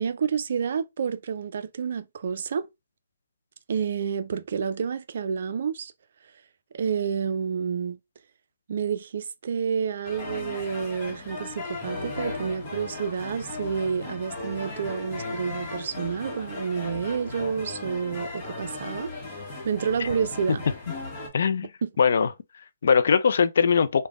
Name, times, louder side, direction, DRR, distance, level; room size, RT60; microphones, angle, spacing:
voice 1, 0.0-2.7 3.7-5.9 6.7-8.0 8.7-20.6 21.8-21.9, right 7 dB, 55° right, 0.3 m, -29 dB
sound 1, 10.0-21.3, left 3 dB, 35° left, 0.9 m, -36 dB
voice 2, 21.3-21.7 22.0-24.1, left 6 dB, 60° left, 0.3 m, -22 dB
3.2 x 2.1 x 2.3 m
hypercardioid pair, 145°, 0 cm